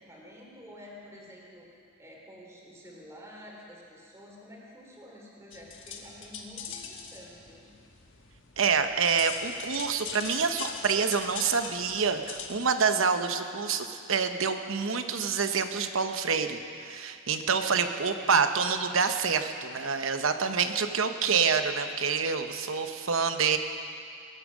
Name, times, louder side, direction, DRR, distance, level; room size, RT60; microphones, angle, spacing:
voice 1, 0.0-1.7 2.0-7.7 17.6-18.2, equal, 15° right, -3 dB, 3.1 m, -49 dB
sound 1, 5.5-12.7, left 6 dB, 65° left, 1.4 m, -41 dB
voice 2, 8.6-23.6, right 5 dB, 70° right, 8 dB, 0.9 m, -27 dB
21.5 x 9.0 x 6.2 m, 2.5 s
head